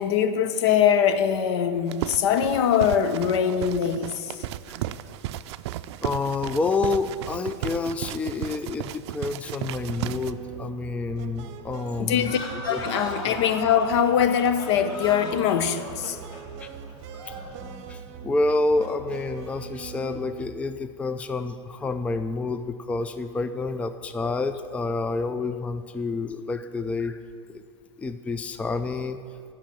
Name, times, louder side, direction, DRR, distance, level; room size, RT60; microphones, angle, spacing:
voice 1, 0.0-4.3 12.0-12.4 12.6-16.2, left 8 dB, 65° left, 11 dB, 0.8 m, -22 dB
sound 1, 1.9-10.3, right 13 dB, 65° right, 0.4 m, -34 dB
voice 2, 6.0-12.3 12.7-12.9 16.6-16.7 17.3-27.2 27.5-27.6 28.0-29.2, left 3 dB, 10° left, 10 dB, 0.4 m, -28 dB
sound 2, 9.7-20.5, right 7 dB, 50° right, 0.8 m, -41 dB
sound 3, 12.1-17.6, left 1 dB, 30° left, 2.9 m, -37 dB
11.5 x 5.8 x 9.1 m, 2.2 s
hypercardioid pair, 115°, 15 cm